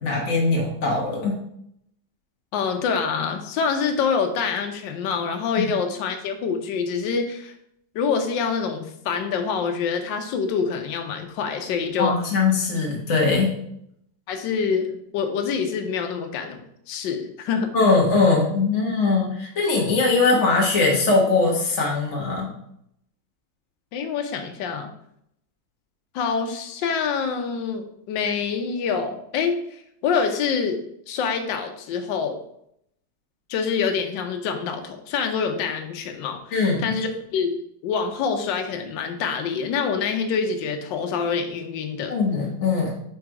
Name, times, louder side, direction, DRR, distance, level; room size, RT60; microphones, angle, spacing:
voice 1, 0.0-1.4 12.0-13.5 17.7-22.5 36.5-36.9 42.1-42.9, left 3 dB, 45° left, -2 dB, 1.2 m, -21 dB
voice 2, 2.5-7.5 7.9-12.2 14.3-17.7 23.9-24.9 26.1-30.8 31.1-32.4 33.5-37.6 37.8-42.2, left 6 dB, 70° left, 5 dB, 1.4 m, -26 dB
5.0 x 4.0 x 4.6 m, 0.73 s
omnidirectional pair, 2.2 m